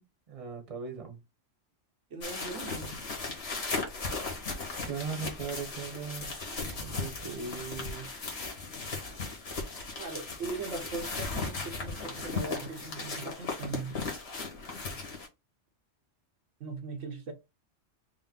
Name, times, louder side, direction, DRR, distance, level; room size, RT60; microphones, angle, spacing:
voice 1, 0.3-1.2 4.8-6.3 6.8-8.1, right 6 dB, 30° right, 0.9 m, -38 dB
voice 2, 2.1-3.0 6.5-6.8 10.0-14.0 16.6-17.3, right 4 dB, 85° right, 1.2 m, -39 dB
sound 1, 2.2-15.3, left 3 dB, 60° left, 1.5 m, -37 dB
5.2 x 2.1 x 3.8 m
omnidirectional pair, 1.2 m